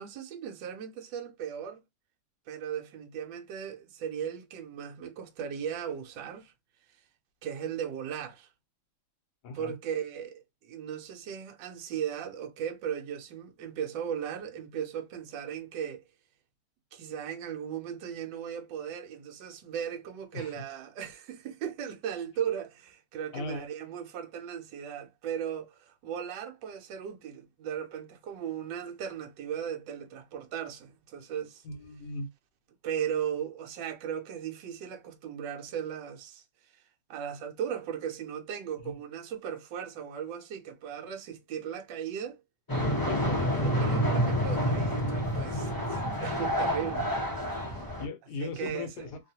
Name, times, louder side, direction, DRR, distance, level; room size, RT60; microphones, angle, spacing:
voice 1, 0.0-1.8 2.5-6.5 7.4-8.5 9.5-16.0 16.9-31.6 32.8-36.4 37.1-42.4 43.3-47.1 48.4-49.1, right 8 dB, 75° right, 1.3 m, -37 dB
voice 2, 9.4-9.7 20.3-20.5 23.3-23.7 31.6-32.3 38.8-38.9 43.1-43.7 48.0-49.2, left 3 dB, 65° left, 1.2 m, -38 dB
sound 1, 42.7-48.0, equal, 20° left, 0.6 m, -28 dB
3.2 x 2.3 x 2.7 m
omnidirectional pair, 2.0 m